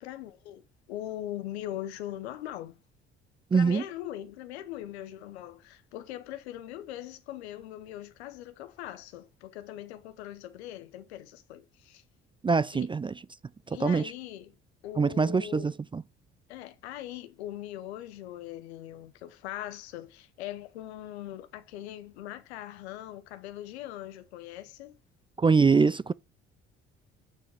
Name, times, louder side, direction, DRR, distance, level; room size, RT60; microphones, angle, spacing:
voice 1, 0.0-2.8 3.5-12.0 12.7-12.9 13.7-14.5 14.8-15.7 16.5-25.0, left 13 dB, 80° left, 1.1 m, -41 dB
voice 2, 3.5-3.8 12.4-13.1 13.7-14.1 15.0-16.0 25.4-26.1, right 5 dB, 15° right, 0.4 m, -24 dB
7.7 x 7.0 x 4.8 m
hypercardioid pair, 50°, 32 cm